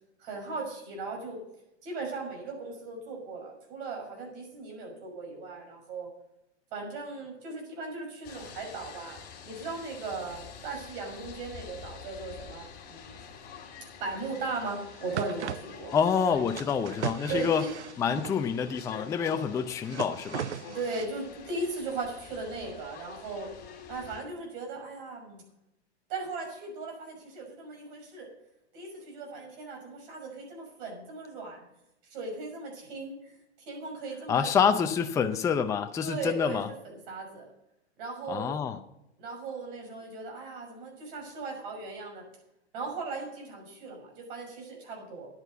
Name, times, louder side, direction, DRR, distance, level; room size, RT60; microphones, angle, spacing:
voice 1, 0.2-1.4 1.8-6.1 6.7-9.2 9.4-13.1 14.0-15.9 17.3-17.7 20.6-23.5 23.9-25.4 26.1-28.3 28.7-31.7 32.1-33.4 33.7-34.5 36.0-37.5 38.0-38.5 39.2-42.2 42.7-45.3, right 3 dB, 50° right, 2 dB, 6.0 m, -38 dB
sound 1, 8.2-24.2, left 6 dB, 30° left, 2.9 m, -47 dB
sound 2, 14.7-14.8 15.0-15.6 16.6-18.4 19.6-21.1, right 10 dB, 80° right, 0.7 m, -37 dB
voice 2, 15.9-17.6 18.0-20.5 34.3-36.7 38.3-38.8, left 7 dB, 10° left, 7 dB, 0.5 m, -27 dB
10.0 x 8.9 x 6.8 m, 0.86 s
hypercardioid pair, 125°, 34 cm